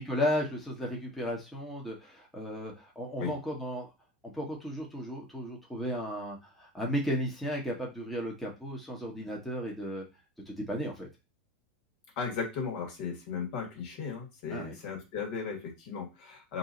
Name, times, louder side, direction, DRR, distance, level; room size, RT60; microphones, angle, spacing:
voice 1, 0.0-3.9 4.2-10.0 10.5-11.1 14.5-14.7, equal, 5° left, -3 dB, 1.0 m, -34 dB
voice 2, 12.2-16.6, left 5 dB, 60° left, 1 dB, 1.6 m, -36 dB
2.7 x 2.7 x 3.8 m, 0.26 s
hypercardioid pair, 120°, 5 cm